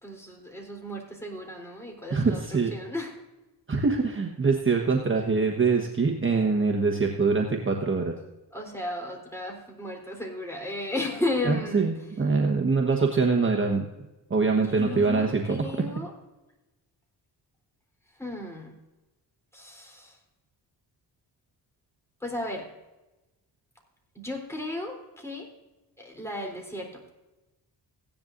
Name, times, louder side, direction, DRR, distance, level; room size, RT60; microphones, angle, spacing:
voice 1, 0.0-2.4 2.7-3.1 8.5-11.9 14.5-16.1 18.2-18.7 19.5-20.2 22.2-22.7 24.2-25.5 26.0-27.1, left 1 dB, 5° left, 0 dB, 3.7 m, -34 dB
voice 2, 2.1-2.7 3.7-8.1 11.4-13.8 14.3-15.7, right 4 dB, 30° right, 1 dB, 1.3 m, -24 dB
16.5 x 10.5 x 2.6 m, 1.0 s
cardioid pair, 90°, 44 cm